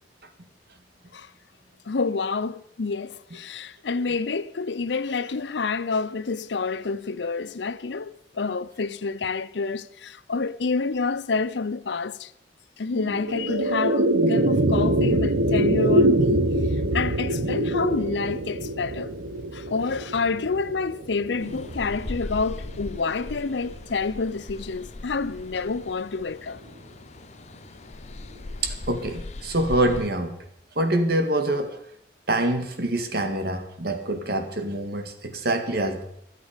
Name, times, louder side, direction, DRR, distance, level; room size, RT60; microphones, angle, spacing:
voice 1, 1.9-12.3 12.8-19.1 19.5-26.6, left 4 dB, 80° left, 0.6 m, -28 dB
sound 1, 12.9-23.4, right 1 dB, 85° right, 1.1 m, -24 dB
sound 2, 21.4-30.1, left 2 dB, 40° left, 0.6 m, -39 dB
voice 2, 28.6-30.4 30.8-31.8 32.3-36.0, right 1 dB, 60° right, 1.9 m, -25 dB
25.5 x 8.4 x 5.2 m
head